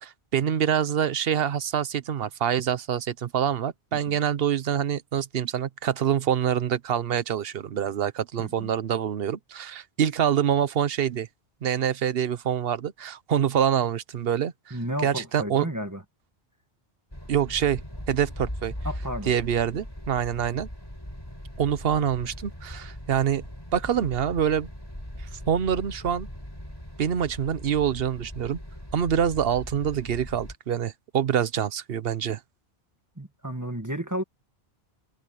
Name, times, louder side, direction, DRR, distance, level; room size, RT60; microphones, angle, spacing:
voice 1, 0.0-11.3 11.6-14.8 15.0-15.7 17.3-18.7 19.3-20.7 21.6-23.4 23.7-24.7 25.5-26.3 27.0-28.6 28.9-32.4, right 9 dB, 65° right, 1.0 m, -26 dB
voice 2, 8.4-8.7 14.7-16.0 18.8-19.3 33.2-34.2, equal, 15° right, 1.8 m, -32 dB
sound 1, 17.1-30.6, equal, 20° left, 7.2 m, -39 dB
omnidirectional pair, 1.1 m